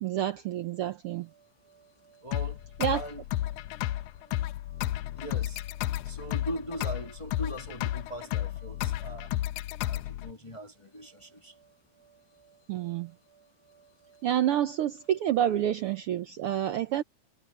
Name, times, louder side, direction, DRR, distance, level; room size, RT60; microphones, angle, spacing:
voice 1, 0.0-1.3 2.8-3.0 12.7-13.1 14.2-17.0, right 11 dB, 85° right, 1.2 m, -28 dB
sound 1, 1.1-16.0, right 4 dB, 35° left, 8.5 m, -62 dB
voice 2, 2.2-2.6 2.9-3.3 5.2-5.6 6.0-9.3 9.8-11.5, right 1 dB, 15° left, 1.4 m, -40 dB
sound 2, 2.3-10.3, left 14 dB, 85° left, 2.1 m, -32 dB
omnidirectional pair, 3.5 m